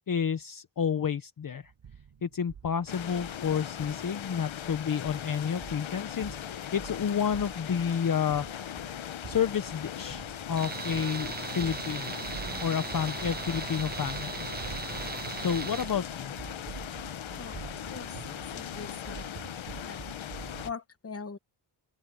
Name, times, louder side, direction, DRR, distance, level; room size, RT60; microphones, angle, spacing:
voice 1, 0.1-1.7 2.2-8.5 9.3-12.2 12.6-14.5 15.4-16.3, left 7 dB, 45° left, 0.9 m, -30 dB
sound 1, 1.6-20.7, right 7 dB, 65° right, 6.8 m, -47 dB
sound 2, 2.9-20.7, left 10 dB, 80° left, 1.3 m, -39 dB
Tools, 10.6-16.0, right 5 dB, 25° right, 0.4 m, -38 dB
voice 2, 17.9-19.4 19.8-20.0 20.6-21.4, left 5 dB, 30° left, 1.3 m, -42 dB
open air
wide cardioid pair, 145°, 46 cm